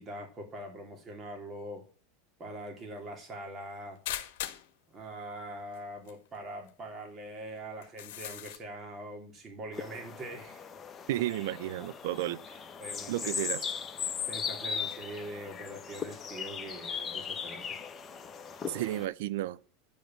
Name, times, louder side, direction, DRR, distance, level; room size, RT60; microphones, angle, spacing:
voice 1, 0.0-1.9 2.4-4.0 4.9-10.7 12.8-13.3 14.2-17.8, right 1 dB, 30° right, 3.1 m, -43 dB
sound 1, 4.0-4.7 5.7-5.8 6.1-6.2 6.7-6.8 7.8-8.6, left 12 dB, 65° left, 1.2 m, -38 dB
sound 2, 9.7-19.1, left 6 dB, 25° left, 1.2 m, -38 dB
voice 2, 11.1-12.4 13.1-13.6 18.7-19.6, right 14 dB, 65° right, 0.6 m, -32 dB
10.5 x 5.2 x 7.4 m
hypercardioid pair, 90°, 0 cm